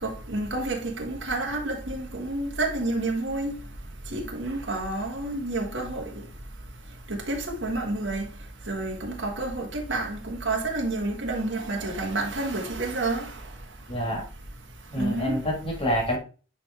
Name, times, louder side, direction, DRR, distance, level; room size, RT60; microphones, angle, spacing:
voice 1, 0.0-3.6 4.1-6.1 7.1-8.3 8.7-13.4 15.0-15.4, right 2 dB, 60° right, 1.6 m, -29 dB
voice 2, 13.9-14.2 14.9-16.2, equal, 25° left, 1.6 m, -27 dB
9.7 x 3.4 x 3.4 m
head